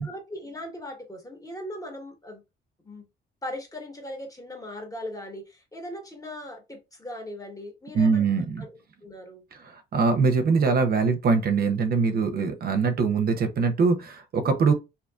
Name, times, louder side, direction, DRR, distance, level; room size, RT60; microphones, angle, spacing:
voice 1, 0.0-2.4 2.8-3.1 3.4-8.3 8.6-8.7 9.0-9.4, left 1 dB, 15° left, 1.1 m, -39 dB
voice 2, 7.9-8.6 9.9-14.7, right 4 dB, 50° right, 0.5 m, -22 dB
2.6 x 2.5 x 2.2 m
cardioid pair, 90°, 20 cm